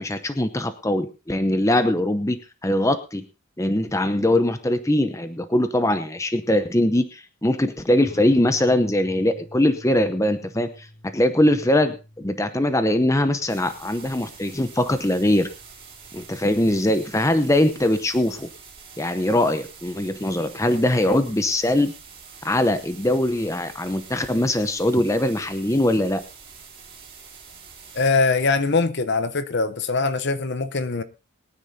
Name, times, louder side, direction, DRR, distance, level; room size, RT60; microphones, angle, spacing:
voice 1, 0.0-3.2 3.6-10.9 11.1-15.5 16.1-18.5 19.0-21.9 22.4-26.2, left 1 dB, 15° left, 0.7 m, -22 dB
sound 1, 8.0-18.8, left 2 dB, 35° left, 6.4 m, -49 dB
sound 2, 13.5-28.1, right 6 dB, 25° right, 3.7 m, -45 dB
voice 2, 27.9-31.0, left 3 dB, 50° left, 0.8 m, -22 dB
22.0 x 9.9 x 2.8 m
head